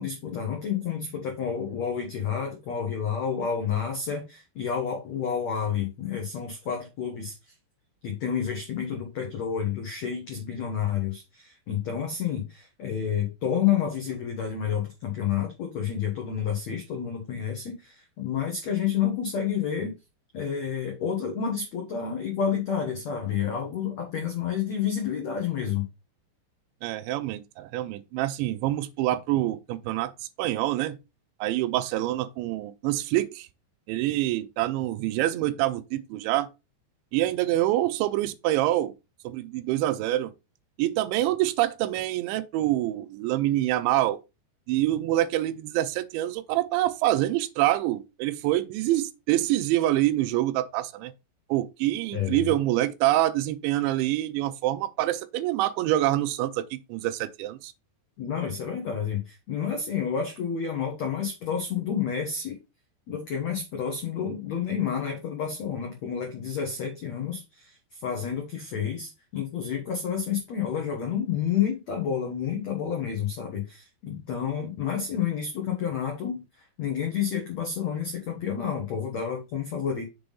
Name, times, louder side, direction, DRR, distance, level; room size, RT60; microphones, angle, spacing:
voice 1, 0.0-7.5 8.0-19.9 20.3-25.9 52.1-52.5 58.2-62.6 63.1-80.0, left 8 dB, 85° left, 1.5 m, -30 dB
voice 2, 26.8-30.1 30.4-31.0 31.4-33.5 33.9-36.5 37.1-38.9 39.2-40.3 40.8-44.2 44.7-51.1 51.5-57.7, right 15 dB, 85° right, 2.8 m, -26 dB
6.9 x 3.7 x 5.4 m
omnidirectional pair, 5.3 m